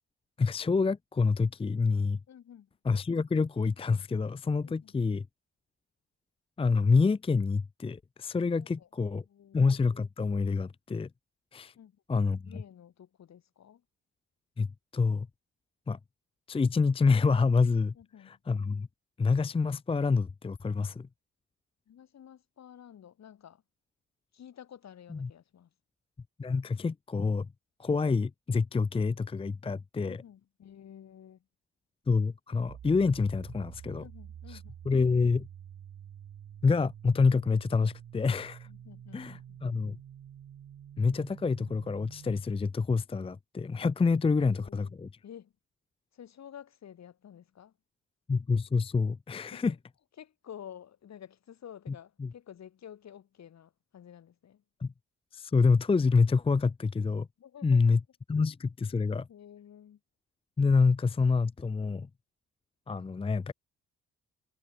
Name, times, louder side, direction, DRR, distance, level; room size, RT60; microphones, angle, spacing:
voice 1, 0.4-2.2 2.8-5.3 6.6-9.2 9.5-11.1 11.5-11.7 12.1-12.5 14.6-14.7 14.9-15.3 15.9-16.0 16.5-17.9 18.3-18.9 19.2-21.1 25.1-25.3 26.4-27.5 27.8-30.2 32.1-34.1 34.5-34.6 34.9-35.5 36.6-38.7 39.1-40.0 41.0-45.1 48.3-49.7 51.9-52.0 52.2-52.3 54.8-54.9 55.3-57.3 57.6-58.0 58.3-59.3 60.6-62.1 62.9-63.5, left 4 dB, 20° left, 0.6 m, -27 dB
voice 2, 2.3-2.7 4.6-5.1 8.5-9.7 11.8-12.0 12.4-13.8 18.0-18.4 21.9-23.6 24.3-25.7 30.0-31.4 34.0-34.7 38.6-39.6 44.5-44.9 45.2-45.5 46.1-47.7 49.3-49.7 50.2-54.6 57.4-58.0 59.3-60.0, left 9 dB, 60° left, 7.6 m, -51 dB
sound 1, 32.7-42.4, right 9 dB, 60° right, 3.6 m, -48 dB
cardioid pair, 90°, 30 cm